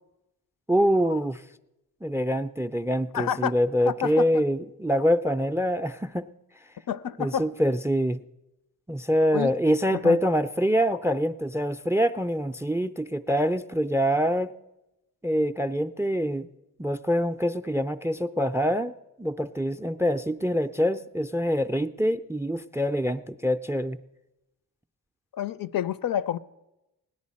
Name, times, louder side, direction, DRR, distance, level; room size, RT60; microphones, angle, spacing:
voice 1, 0.7-1.4 2.0-6.3 7.2-8.2 8.9-14.5 15.2-16.5 16.8-18.9 19.2-24.0, equal, 5° right, 0.3 m, -25 dB
voice 2, 3.1-3.5 3.8-4.3 6.9-7.5 9.3-9.5 10.0-10.2 25.3-26.4, left 9 dB, 60° left, 0.5 m, -28 dB
17.0 x 10.5 x 4.2 m
cardioid pair, 45°, 39 cm